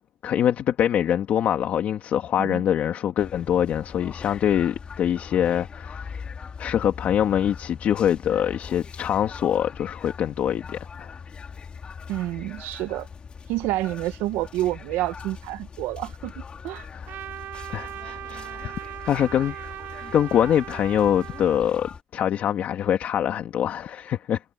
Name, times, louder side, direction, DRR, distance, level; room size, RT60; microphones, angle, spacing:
voice 1, 0.2-6.2 6.6-11.1 16.9-17.1 17.7-18.8 19.1-19.6 20.1-24.4, left 10 dB, 50° left, 2.2 m, -24 dB
sound 1, 3.2-22.0, left 6 dB, 30° left, 2.7 m, -41 dB
voice 2, 12.1-13.1 13.5-16.9, right 16 dB, 90° right, 0.9 m, -29 dB
Trumpet, 17.1-21.7, right 13 dB, 65° right, 4.3 m, -38 dB
cardioid pair, 135°, 3 cm